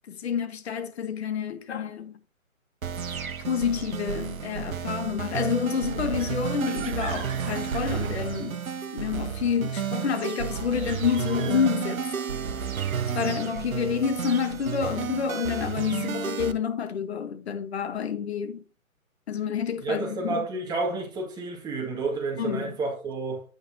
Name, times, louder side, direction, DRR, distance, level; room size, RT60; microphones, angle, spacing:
voice 1, 0.1-2.2 3.4-8.6 8.9-12.0 13.1-18.6 19.3-20.4 22.4-22.8, left 7 dB, 50° left, 1.4 m, -28 dB
sound 1, 2.8-16.5, right 7 dB, 75° right, 1.1 m, -32 dB
sound 2, 5.7-8.8 10.4-12.4, right 6 dB, 35° right, 2.4 m, -43 dB
voice 2, 19.8-23.4, right 3 dB, 10° right, 1.9 m, -30 dB
9.0 x 8.6 x 2.8 m
figure-of-eight pair, 140°, 42 cm